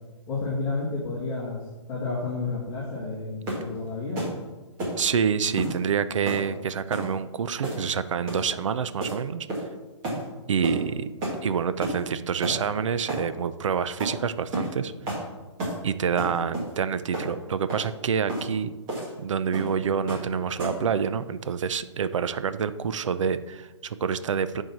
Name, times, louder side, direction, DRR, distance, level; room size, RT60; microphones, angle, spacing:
voice 1, 0.3-1.6 1.9-4.2, left 3 dB, 15° left, -9 dB, 1.9 m, -30 dB
sound 1, 3.5-3.7 4.2-4.4 4.8-5.0 5.6-5.8 6.3-6.5 6.9-7.1 7.6-7.9 8.3-8.5 9.0-9.2 9.5-9.8 10.0-10.2 10.6-10.8 11.2-11.4 11.8-12.0 12.4-12.6 13.1-13.3 14.0-14.2 14.5-14.7 15.1-15.3 15.6-15.8 16.2-16.7 17.1-17.3 17.7-17.9 18.3-18.5 18.9-19.1 19.5-19.7 20.1-20.3 20.6-20.9, right 1 dB, 20° right, 2.0 m, -31 dB
voice 2, 5.0-9.5 10.5-11.1 11.4-14.9 15.8-18.7 19.2-24.6, right 7 dB, 75° right, 13 dB, 0.6 m, -27 dB
9.3 x 4.6 x 5.8 m, 1.2 s
hypercardioid pair, 175°, 16 cm